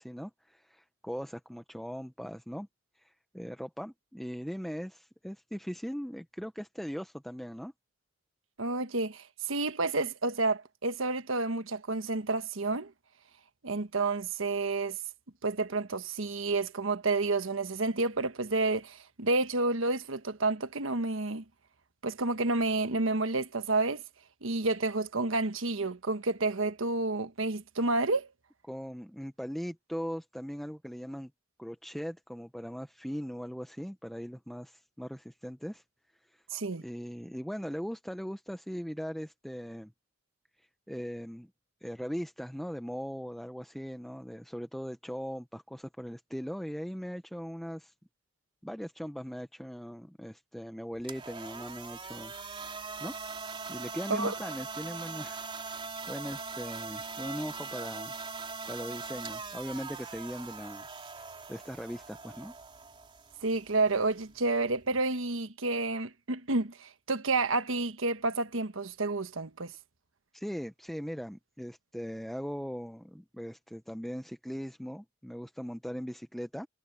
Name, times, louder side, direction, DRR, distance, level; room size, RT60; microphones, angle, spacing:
voice 1, 0.0-2.7 3.0-7.7 28.7-31.3 31.6-35.8 36.2-36.4 36.8-39.9 40.6-41.5 41.8-47.9 48.6-52.3 52.8-53.1 53.7-55.5 56.1-58.2 58.7-60.9 61.2-62.5 70.3-76.7, equal, ahead, 0.6 m, -39 dB
voice 2, 8.6-12.9 13.6-15.0 15.4-21.4 22.0-24.0 24.4-28.3 36.5-36.8 54.1-54.3 63.4-69.7, right 3 dB, 85° right, 1.3 m, -30 dB
sound 1, 50.9-65.0, right 4 dB, 25° right, 3.8 m, -42 dB
head